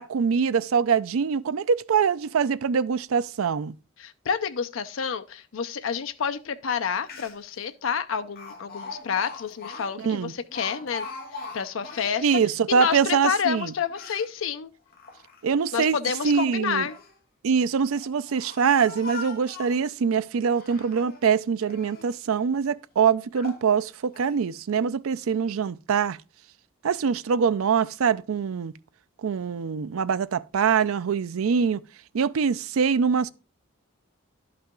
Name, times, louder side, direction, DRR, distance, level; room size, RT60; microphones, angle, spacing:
voice 1, 0.0-3.7 10.0-10.3 12.2-13.7 15.4-16.0 16.2-16.9 17.4-26.2 26.8-28.7 29.2-31.8 32.1-33.3, right 6 dB, 85° right, 0.4 m, -24 dB
voice 2, 4.0-11.1 11.3-12.3 12.7-14.7 15.7-17.0, left 6 dB, 75° left, 0.5 m, -29 dB
Speech, 6.8-6.9 7.0-7.6 8.4-12.2 12.7-14.3 14.9-15.7 16.6-17.2 17.9-19.9 20.4-21.2 21.6-22.1 22.7-22.8 23.3-23.7 24.1-24.4, left 4 dB, 45° left, 1.3 m, -41 dB
11.5 x 5.6 x 3.7 m
head